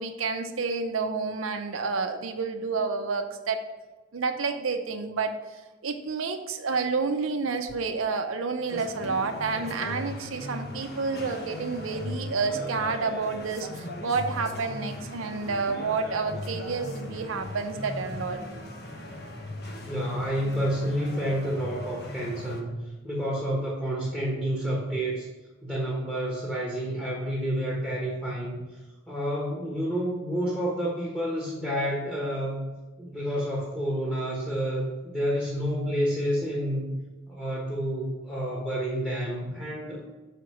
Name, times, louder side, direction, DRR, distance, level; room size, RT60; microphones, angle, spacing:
voice 1, 0.0-3.6 4.1-5.3 5.8-18.4, right 4 dB, 80° right, 5 dB, 0.6 m, -29 dB
sound 1, 8.7-22.6, left 1 dB, 50° left, 1.1 m, -38 dB
voice 2, 19.8-25.3 25.6-28.7 29.1-32.7 33.0-36.9 37.3-40.0, equal, 5° left, -5 dB, 1.2 m, -29 dB
6.4 x 5.0 x 5.7 m, 1.2 s
head